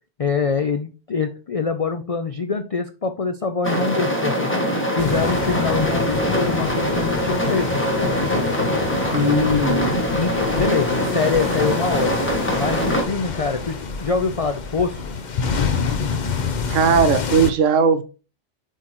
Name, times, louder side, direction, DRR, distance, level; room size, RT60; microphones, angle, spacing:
voice 1, 0.2-4.5 5.0-8.1 9.1-12.2 12.6-15.0, left 5 dB, 65° left, 7 dB, 0.3 m, -24 dB
sound 1, 3.6-13.0, equal, 10° left, 1.4 m, -23 dB
sound 2, 5.0-17.5, left 5 dB, 45° left, 0.7 m, -27 dB
voice 2, 9.1-10.1 16.7-18.0, right 6 dB, 80° right, 10 dB, 1.1 m, -19 dB
7.6 x 4.6 x 3.0 m, 0.33 s
omnidirectional pair, 1.3 m